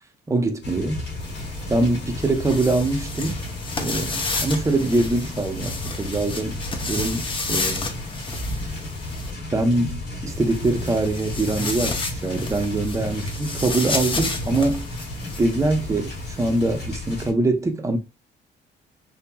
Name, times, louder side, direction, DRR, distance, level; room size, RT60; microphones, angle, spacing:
voice 1, 0.3-1.0 1.7-3.4 3.8-7.9 9.5-14.9 15.4-18.0, right 2 dB, 15° right, 0.6 m, -23 dB
sound 1, 0.6-17.3, left 1 dB, 70° left, 1.1 m, -33 dB
sound 2, 1.2-9.3 10.3-16.8, left 3 dB, 25° left, 0.6 m, -32 dB
3.0 x 2.7 x 2.2 m
cardioid pair, 100°, 19 cm